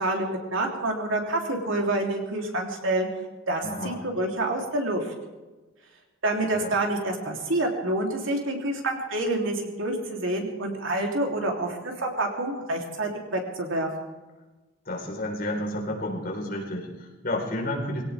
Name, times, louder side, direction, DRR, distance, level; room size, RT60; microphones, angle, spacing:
voice 1, 0.0-3.1 3.5-5.1 6.2-13.9, right 1 dB, 80° right, 0 dB, 3.4 m, -27 dB
voice 2, 3.6-4.0 6.5-6.7 14.9-18.0, left 1 dB, 50° left, -1 dB, 4.4 m, -31 dB
22.5 x 17.5 x 3.6 m, 1.2 s
head